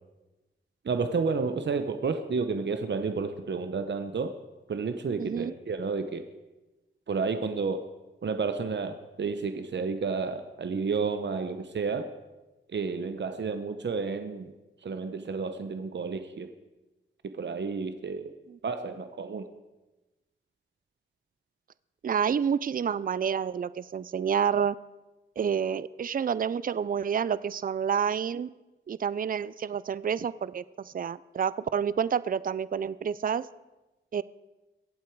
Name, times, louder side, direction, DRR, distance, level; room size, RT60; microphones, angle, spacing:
voice 1, 0.8-4.4 4.7-6.2 7.1-7.9 8.2-12.1 12.7-14.5 14.8-16.5 17.3-18.3 18.6-19.5, right 4 dB, 55° right, 8 dB, 0.9 m, -31 dB
voice 2, 5.2-5.5 22.0-24.8 25.4-28.5 28.9-33.5 34.1-34.2, right 7 dB, 40° right, 18 dB, 0.4 m, -29 dB
23.0 x 8.2 x 4.7 m, 1.1 s
cardioid pair, 70°, 21 cm